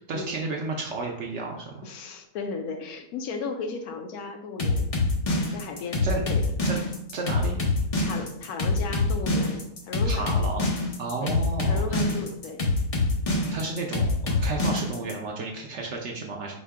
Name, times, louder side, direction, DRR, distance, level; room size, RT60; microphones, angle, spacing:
voice 1, 0.1-1.8 6.0-6.2 6.6-6.8 7.1-7.6 10.1-10.7 11.0-12.1 13.5-16.5, right 3 dB, 65° right, 0 dB, 0.7 m, -32 dB
voice 2, 1.8-4.9 5.5-6.5 8.0-10.3 11.2-11.3 11.7-12.6, left 4 dB, 80° left, 5 dB, 1.1 m, -35 dB
sound 1, 4.6-15.1, left 2 dB, 60° left, 0.3 m, -25 dB
4.1 x 2.2 x 4.6 m, 0.75 s
omnidirectional pair, 1.6 m